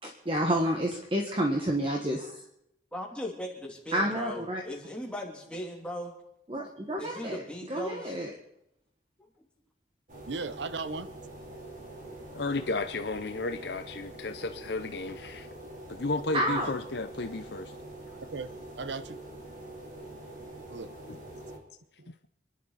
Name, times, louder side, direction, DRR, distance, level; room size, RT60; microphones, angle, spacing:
voice 1, 0.0-2.4 3.9-4.6 6.5-7.4 7.7-8.3 16.3-16.8, right 1 dB, 30° right, 1.5 m, -29 dB
voice 2, 2.9-6.1 7.0-8.2, equal, 5° left, 3.0 m, -38 dB
sound 1, 10.1-21.6, right 1 dB, 45° right, 3.3 m, -45 dB
voice 3, 10.3-11.1 16.4-16.7 18.3-18.5 18.8-19.2 20.7-20.9 22.0-22.1, right 3 dB, 90° right, 0.8 m, -37 dB
voice 4, 12.3-15.5 15.9-17.7 21.1-21.2, left 3 dB, 70° left, 0.7 m, -33 dB
28.0 x 11.0 x 4.1 m
head